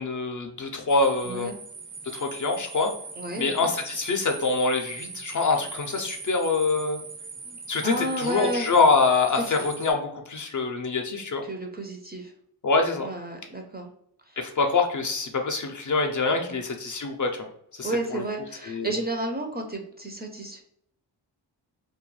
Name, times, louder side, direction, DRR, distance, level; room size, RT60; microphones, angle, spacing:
voice 1, 0.0-1.5 2.0-2.9 3.4-7.0 7.7-11.5 12.6-13.1 14.4-17.5 17.8-18.2 18.7-18.9, left 3 dB, 45° left, 4 dB, 0.4 m, -25 dB
sound 1, 0.9-9.9, right 4 dB, 80° right, 0.8 m, -41 dB
voice 2, 1.2-1.6 3.2-3.7 7.5-7.6 7.8-8.7 9.4-9.5 11.4-12.3 13.0-13.9 14.3-14.4 16.3-16.6 17.8-20.6, right 1 dB, 25° right, 2 dB, 0.4 m, -32 dB
2.2 x 2.2 x 3.0 m, 0.72 s
wide cardioid pair, 80°, 45 cm